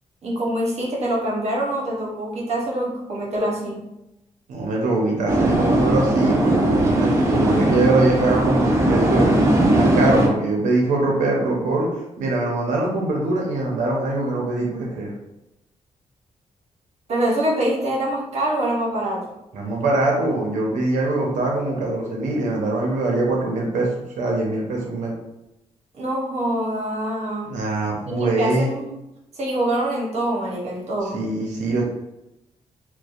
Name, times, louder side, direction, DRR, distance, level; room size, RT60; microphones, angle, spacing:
voice 1, 0.2-3.8 17.1-19.3 25.9-27.5 28.1-29.0 29.4-31.2, right 1 dB, 60° right, -3 dB, 0.8 m, -25 dB
voice 2, 4.5-9.3 9.7-15.1 19.5-23.9 24.2-25.2 27.4-28.8 31.1-31.9, right 2 dB, 90° right, -1 dB, 0.6 m, -22 dB
sound 1, 5.3-10.3, right 1 dB, 25° right, 0.5 m, -19 dB
2.5 x 2.1 x 2.3 m, 0.90 s
cardioid pair, 80°, 12 cm